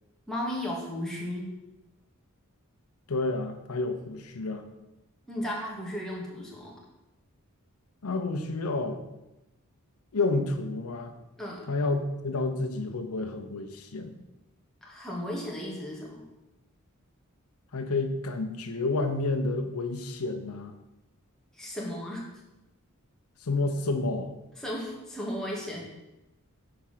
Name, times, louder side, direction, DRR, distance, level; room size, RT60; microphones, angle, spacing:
voice 1, 0.3-1.5 5.3-6.8 11.4-11.7 14.8-16.2 21.5-22.3 24.6-25.9, left 1 dB, ahead, -4 dB, 1.6 m, -35 dB
voice 2, 3.1-4.6 8.0-9.0 10.1-11.1 11.7-14.2 17.7-20.7 23.4-24.3, left 3 dB, 80° left, 6 dB, 0.7 m, -30 dB
7.0 x 4.7 x 5.6 m, 0.97 s
head